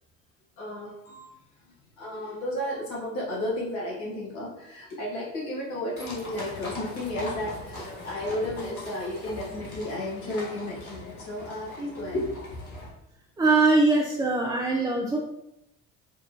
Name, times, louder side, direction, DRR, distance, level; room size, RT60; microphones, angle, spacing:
voice 1, 0.6-1.3 2.0-12.4, left 1 dB, 65° left, -5 dB, 1.5 m, -33 dB
sound 1, 6.0-12.9, left 2 dB, 85° left, 0.9 m, -40 dB
voice 2, 13.4-15.2, right 3 dB, 10° right, -1 dB, 0.4 m, -22 dB
4.5 x 2.4 x 2.8 m, 0.84 s
figure-of-eight pair, 55°, 42 cm